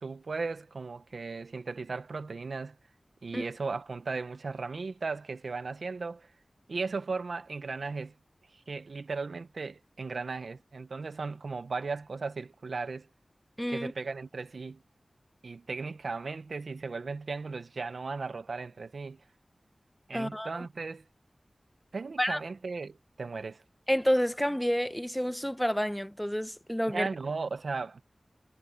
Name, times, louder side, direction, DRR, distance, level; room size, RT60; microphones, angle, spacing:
voice 1, 0.0-2.8 3.2-6.3 6.7-8.1 8.5-13.1 13.7-14.8 15.4-19.2 20.1-21.0 21.9-23.6 26.9-28.0, right 4 dB, 85° right, 0.8 m, -36 dB
voice 2, 13.6-13.9 20.1-20.7 22.2-22.4 23.9-27.1, equal, 5° left, 1.0 m, -29 dB
wide cardioid pair, 65°, 0 cm